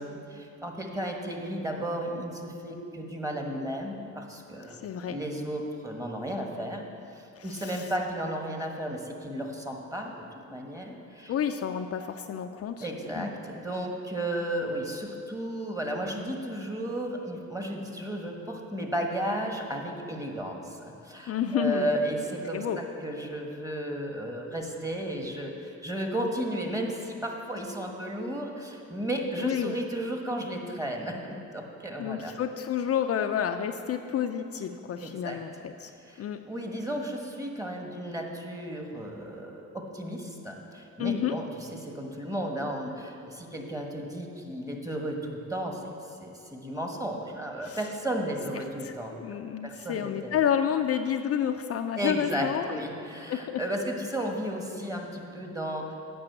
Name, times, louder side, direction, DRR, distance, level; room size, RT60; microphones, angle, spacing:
voice 1, 0.0-4.8 5.0-6.8 7.1-11.3 12.8-32.3 35.0-35.4 36.0-49.2 49.6-50.4 52.0-56.0, right 1 dB, 10° right, 2 dB, 1.3 m, -34 dB
voice 2, 4.7-5.2 7.4-7.9 11.3-12.9 13.2-13.3 21.3-21.9 22.5-22.8 29.4-29.8 32.0-35.9 36.2-36.4 41.0-41.4 47.6-47.8 48.6-52.8 53.3-53.6, left 9 dB, 50° left, 6 dB, 0.5 m, -30 dB
8.7 x 5.5 x 7.8 m, 2.6 s
cardioid pair, 90°, 30 cm